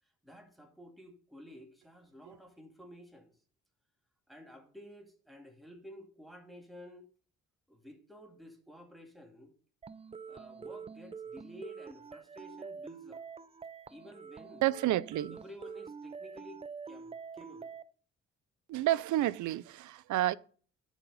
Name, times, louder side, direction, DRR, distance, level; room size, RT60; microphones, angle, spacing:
voice 1, 0.0-3.4 4.3-7.1 7.7-9.5 10.3-13.2 13.9-14.7 15.2-17.7, equal, ahead, 2.3 m, -52 dB
sound 1, 9.8-17.8, right 5 dB, 20° right, 0.4 m, -46 dB
voice 2, 14.6-15.4 18.7-20.3, right 14 dB, 75° right, 0.6 m, -30 dB
9.7 x 7.3 x 5.4 m
cardioid pair, 90°, 30 cm